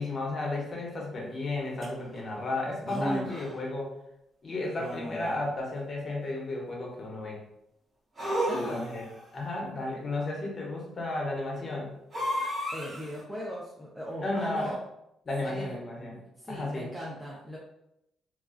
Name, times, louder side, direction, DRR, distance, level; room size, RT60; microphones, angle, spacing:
voice 1, 0.0-3.9 4.4-7.4 8.5-9.0 9.3-11.9 14.2-14.7 15.2-16.2 16.5-16.9, left 2 dB, 40° left, -2 dB, 0.8 m, -33 dB
sound 1, 1.8-1.9 2.8-3.6 4.8-5.5 8.2-9.2 12.1-13.2, equal, 35° right, 1.1 m, -33 dB
voice 2, 8.5-8.9 12.7-14.8 15.4-15.7 16.4-17.6, equal, 5° right, -6 dB, 0.5 m, -38 dB
2.3 x 2.3 x 2.4 m, 0.81 s
cardioid pair, 90°, 0 cm